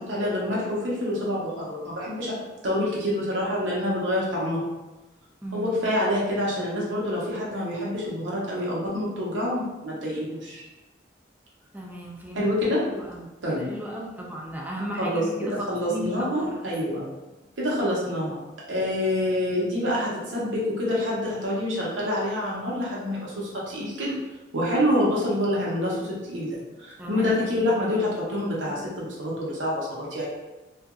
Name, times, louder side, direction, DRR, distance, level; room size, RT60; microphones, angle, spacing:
voice 1, 0.0-4.6 5.5-10.6 12.3-12.8 13.4-13.6 15.0-17.0 17.6-18.4 18.7-24.2 24.5-30.3, left 1 dB, 90° right, -5 dB, 0.9 m, -27 dB
voice 2, 5.4-5.8 11.7-12.5 12.9-16.8 27.0-27.7, equal, 10° right, -1 dB, 0.4 m, -35 dB
2.8 x 2.5 x 2.4 m, 1.1 s
head